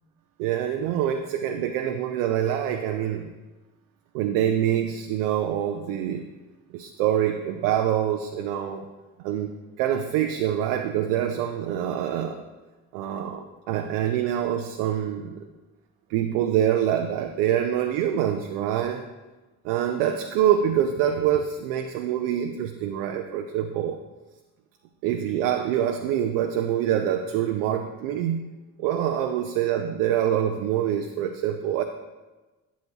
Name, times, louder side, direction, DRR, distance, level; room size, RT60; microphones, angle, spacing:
voice 1, 0.4-3.3 4.1-6.3 6.7-8.8 9.2-9.5 9.8-12.4 12.9-15.5 16.1-19.0 19.6-24.0 25.0-28.5 28.8-31.8, right 10 dB, 70° right, 6 dB, 0.6 m, -25 dB
10.0 x 8.3 x 2.9 m, 1.2 s
figure-of-eight pair, 45°, 46 cm